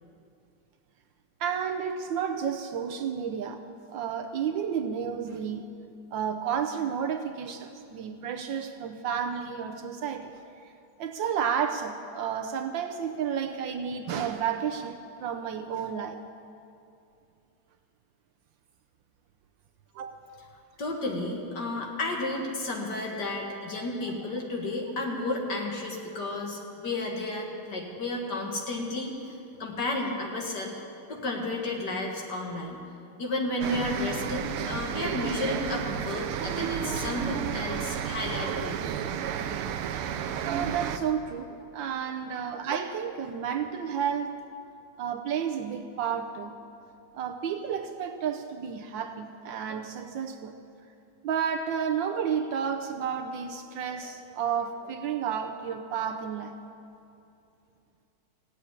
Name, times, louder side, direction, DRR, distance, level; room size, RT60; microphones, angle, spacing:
voice 1, 1.4-3.6 3.9-5.6 6.1-10.7 11.0-16.2 19.9-20.2 40.4-44.4 45.0-46.6 47.1-50.5 51.2-56.6, right 7 dB, 70° right, 6 dB, 1.3 m, -31 dB
voice 2, 20.8-30.8 31.1-32.8 33.2-38.8, left 2 dB, 55° left, 0 dB, 2.3 m, -32 dB
sound 1, 33.6-41.0, right 8 dB, 90° right, 1.6 m, -32 dB
15.5 x 8.4 x 9.9 m, 2.6 s
omnidirectional pair, 2.3 m